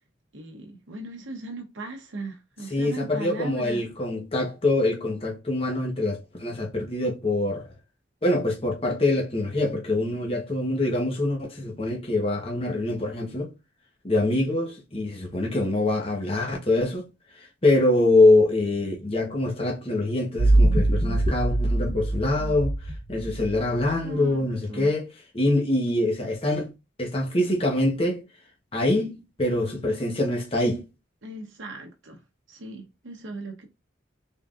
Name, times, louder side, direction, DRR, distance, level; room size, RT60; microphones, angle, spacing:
voice 1, 0.3-3.8 23.6-23.8 24.0-24.9 31.2-32.2 32.5-33.7, right 2 dB, 80° right, 0.9 m, -38 dB
voice 2, 2.7-7.7 8.2-13.5 14.0-17.1 17.6-22.7 23.1-25.1 25.3-26.7 27.0-28.2 28.7-30.8, left 2 dB, 30° left, 1.0 m, -24 dB
sound 1, 20.4-23.9, right 1 dB, 40° right, 0.8 m, -23 dB
3.7 x 3.5 x 2.4 m
head